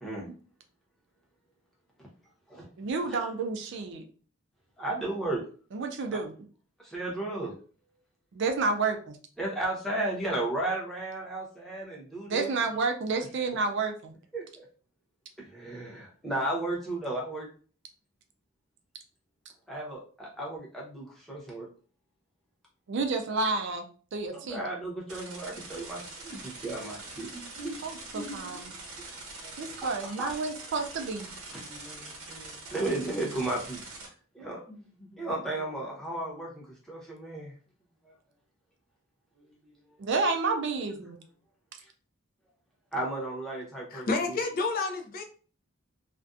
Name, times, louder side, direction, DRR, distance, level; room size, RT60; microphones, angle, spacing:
voice 1, 2.8-4.0 5.7-6.3 8.3-9.2 12.3-14.1 22.9-23.8 24.1-24.6 27.8-28.7 29.6-31.3 40.0-41.2, right 4 dB, 55° right, 0.4 m, -30 dB
voice 2, 4.8-5.4 6.8-7.5 9.4-12.5 14.3-14.6 15.4-17.5 19.7-21.7 24.3-27.8 28.1-28.6 29.4-29.5 29.8-30.3 31.5-33.8 34.3-37.5 38.0-38.1 42.9-44.3, right 2 dB, ahead, 0.8 m, -34 dB
sound 1, 25.1-34.1, right 3 dB, 90° right, 0.9 m, -44 dB
voice 3, 43.9-45.2, left 3 dB, 40° left, 0.3 m, -29 dB
2.5 x 2.1 x 2.4 m
head